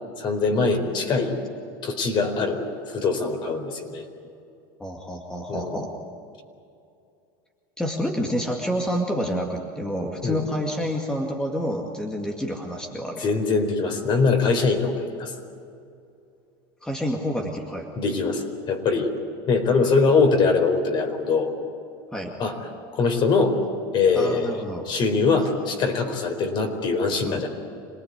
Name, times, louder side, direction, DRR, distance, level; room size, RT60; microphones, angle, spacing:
voice 1, 0.2-1.3 1.8-4.0 5.5-5.8 10.2-10.4 13.2-15.3 18.0-19.1 19.5-21.5 22.4-22.5 22.9-23.6 23.9-24.6 24.9-27.5, left 4 dB, 40° left, 5 dB, 4.4 m, -22 dB
voice 2, 4.8-5.9 7.8-13.2 16.8-17.9 22.1-22.3 24.1-24.9 27.2-27.5, equal, 5° left, 0 dB, 2.2 m, -28 dB
26.5 x 19.5 x 9.7 m, 2.5 s
supercardioid pair, 130°, 12 cm